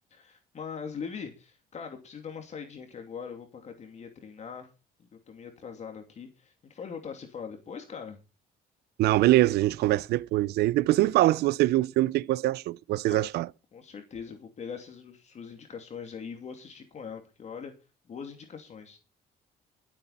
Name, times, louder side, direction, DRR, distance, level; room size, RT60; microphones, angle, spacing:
voice 1, 0.1-4.7 5.0-8.2 13.1-13.3 13.7-17.7 18.1-19.0, left 6 dB, 40° left, 2.7 m, -41 dB
voice 2, 9.0-13.5, right 16 dB, 75° right, 0.5 m, -23 dB
20.5 x 8.4 x 4.2 m
cardioid pair, 110°, 17 cm